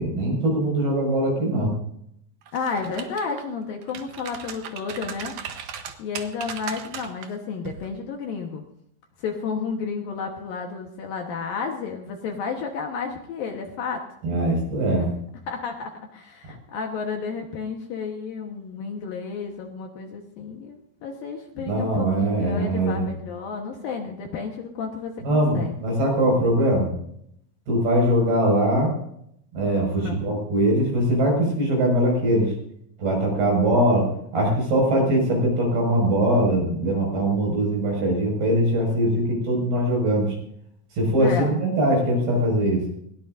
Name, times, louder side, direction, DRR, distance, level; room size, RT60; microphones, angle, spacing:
voice 1, 0.0-1.7 14.2-15.1 21.6-23.1 25.2-26.9 27.7-28.9 29.5-32.5 33.0-40.4 40.9-42.8, right 1 dB, 60° right, 0 dB, 7.7 m, -22 dB
voice 2, 2.5-5.3 6.0-8.7 9.2-14.0 15.5-25.7 30.0-30.2 41.2-41.6, left 5 dB, 65° left, 2 dB, 2.6 m, -32 dB
sound 1, 2.5-3.4 3.8-7.3 7.6-7.9, right 8 dB, 75° right, 1.7 m, -37 dB
20.5 x 18.0 x 2.6 m, 0.71 s
omnidirectional pair, 5.1 m